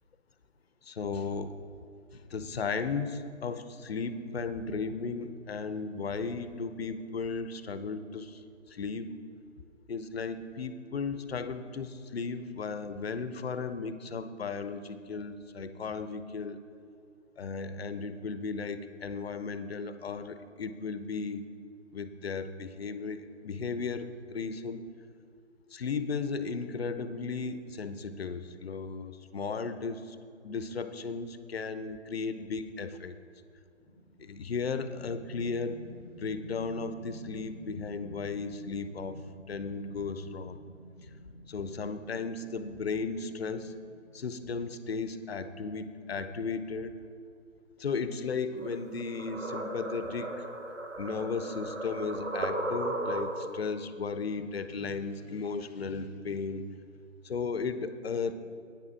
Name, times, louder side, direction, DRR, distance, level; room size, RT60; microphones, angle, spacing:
voice 1, 0.9-1.6 2.3-8.3 8.8-9.1 9.9-16.6 17.4-21.4 21.9-24.9 25.7-30.0 30.4-33.1 34.2-35.8 36.2-39.2 39.5-40.6 41.5-43.7 44.1-46.9 47.8-50.4 51.0-56.7 57.2-58.3, left 4 dB, 50° left, 11 dB, 0.7 m, -35 dB
sound 1, 33.8-46.0, right 1 dB, 35° right, 2.3 m, -51 dB
sound 2, 48.6-53.7, right 2 dB, 65° right, 1.2 m, -36 dB
9.3 x 7.2 x 6.1 m, 2.4 s
figure-of-eight pair, 145°, 39 cm